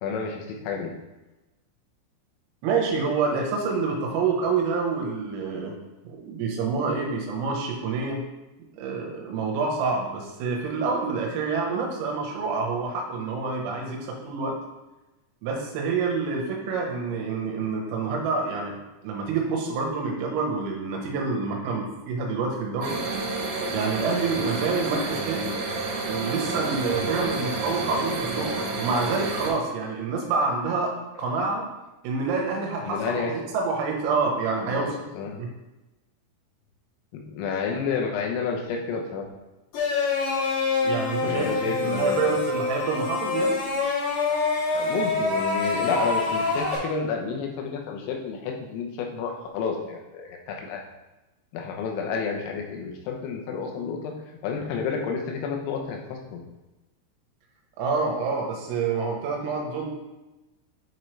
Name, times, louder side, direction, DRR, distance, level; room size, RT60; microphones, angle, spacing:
voice 1, 0.0-0.9 32.8-33.4 34.6-35.4 37.1-39.3 41.2-42.4 44.7-50.8 51.5-54.1 54.4-56.4, left 5 dB, 85° left, 2 dB, 3.5 m, -30 dB
voice 2, 2.6-5.7 6.1-8.2 8.8-14.5 15.4-18.8 19.0-23.0 23.7-25.5 26.0-30.9 31.2-31.7 32.0-35.0 35.4-35.5 40.8-41.5 41.8-43.6 57.8-59.9, right 4 dB, 85° right, 1 dB, 3.8 m, -27 dB
sound 1, 22.8-29.5, right 3 dB, 70° right, 3.1 m, -30 dB
sound 2, 39.7-46.8, left 4 dB, 65° left, 4.0 m, -26 dB
9.3 x 4.5 x 3.2 m, 1.1 s
omnidirectional pair, 5.9 m